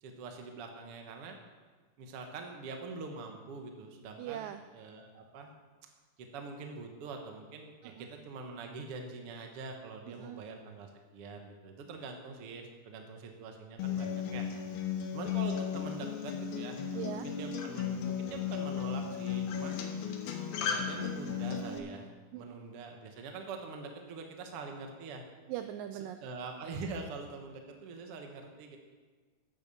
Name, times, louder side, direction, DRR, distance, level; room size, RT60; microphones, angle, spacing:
voice 1, 0.0-1.4 2.0-5.5 6.2-14.4 15.1-19.8 20.6-22.1 22.4-25.2 26.2-28.8, right 4 dB, 60° right, 3 dB, 1.6 m, -44 dB
voice 2, 4.2-4.6 7.8-8.1 10.1-10.4 16.9-17.3 22.3-22.6 25.5-26.2, right 12 dB, 80° right, 9 dB, 2.0 m, -40 dB
Acoustic guitar, 13.8-21.8, left 7 dB, 80° left, 3.0 m, -35 dB
10.5 x 9.2 x 7.0 m, 1.4 s
omnidirectional pair, 4.3 m